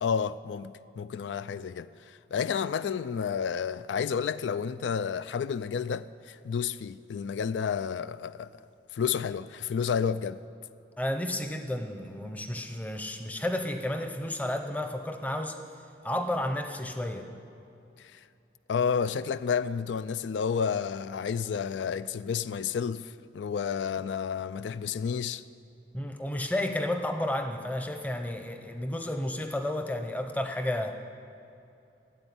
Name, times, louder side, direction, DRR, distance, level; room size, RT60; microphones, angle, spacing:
voice 1, 0.0-8.6 8.9-10.4 18.0-18.2 18.7-25.4, left 6 dB, 85° left, 0.3 m, -31 dB
voice 2, 11.0-15.6 16.0-17.3 25.9-30.9, left 1 dB, 10° left, 0.7 m, -32 dB
13.5 x 8.0 x 10.0 m
head